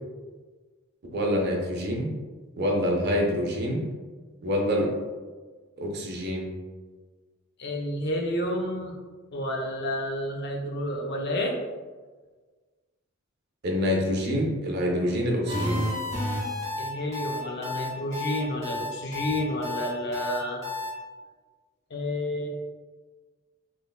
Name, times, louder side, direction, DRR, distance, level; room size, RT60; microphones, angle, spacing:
voice 1, 1.1-2.1 2.6-3.8 4.4-4.9 5.8-6.5 13.6-15.8, equal, 50° right, 0 dB, 0.6 m, -26 dB
voice 2, 7.6-8.9 9.3-11.6 16.8-20.6 21.9-22.5, left 1 dB, 50° left, 0 dB, 0.5 m, -30 dB
sound 1, 15.5-20.9, left 1 dB, 15° right, 0.9 m, -31 dB
3.4 x 3.0 x 2.2 m, 1.4 s
head